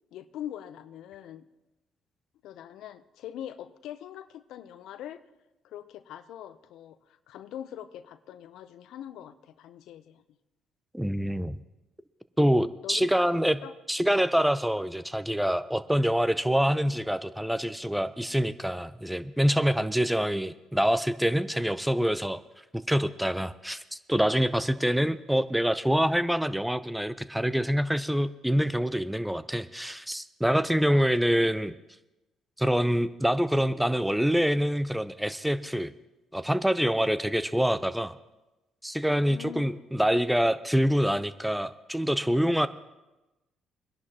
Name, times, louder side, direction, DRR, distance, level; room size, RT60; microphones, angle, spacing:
voice 1, 0.1-1.5 2.4-5.2 5.6-10.2 12.5-13.1 13.6-13.7 19.9-20.2 30.6-31.4 39.1-39.8, left 10 dB, 70° left, 13 dB, 0.7 m, -43 dB
voice 2, 10.9-11.6 12.4-13.6 13.9-22.4 22.7-31.7 32.6-35.9 36.3-38.1 38.8-42.7, equal, 5° right, 14 dB, 0.6 m, -26 dB
23.0 x 11.0 x 2.9 m, 1.0 s
hypercardioid pair, 55°, 0 cm